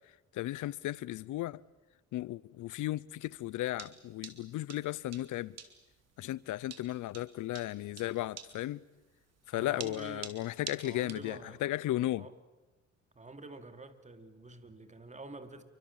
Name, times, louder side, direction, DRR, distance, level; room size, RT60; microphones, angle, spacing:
voice 1, 0.3-1.6 2.1-5.6 6.2-8.8 9.5-12.3, left 15 dB, 80° left, 0.8 m, -35 dB
sound 1, 3.2-11.3, right 7 dB, 55° right, 3.5 m, -47 dB
voice 2, 9.5-10.4 10.8-11.6 12.2-12.3 13.1-15.6, right 2 dB, 25° right, 3.0 m, -47 dB
29.0 x 25.0 x 7.5 m
cardioid pair, 90°, 30 cm